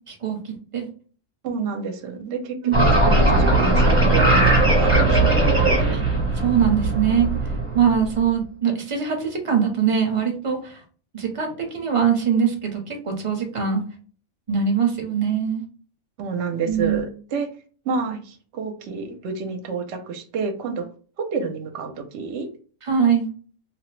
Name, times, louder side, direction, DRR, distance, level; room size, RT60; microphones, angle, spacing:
voice 1, 0.1-0.9 2.6-2.7 6.4-7.3 7.7-10.8 11.1-13.8 14.5-15.6 16.7-17.0 22.9-23.3, right 7 dB, 35° right, 2 dB, 0.5 m, -22 dB
voice 2, 1.4-6.0 16.2-17.5 17.8-20.9 21.2-22.5, right 5 dB, 65° right, 5 dB, 0.8 m, -29 dB
sound 1, 2.7-8.1, right 2 dB, 10° right, 0.9 m, -18 dB
2.9 x 2.0 x 3.1 m, 0.40 s
omnidirectional pair, 1.4 m